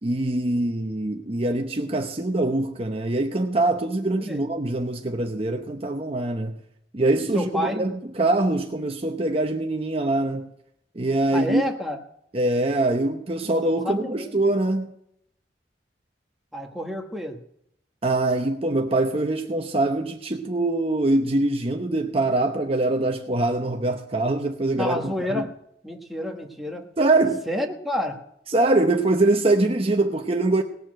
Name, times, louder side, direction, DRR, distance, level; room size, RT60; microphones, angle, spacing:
voice 1, 0.0-6.6 6.9-10.5 10.9-11.6 12.3-14.9 18.0-25.5 27.0-27.4 28.5-30.6, right 2 dB, 35° right, 0.8 m, -23 dB
voice 2, 7.3-7.9 11.3-12.0 13.8-14.3 16.5-17.4 24.8-25.5 25.8-26.9 27.5-28.2, left 1 dB, ahead, 1.4 m, -29 dB
18.5 x 7.1 x 6.3 m
head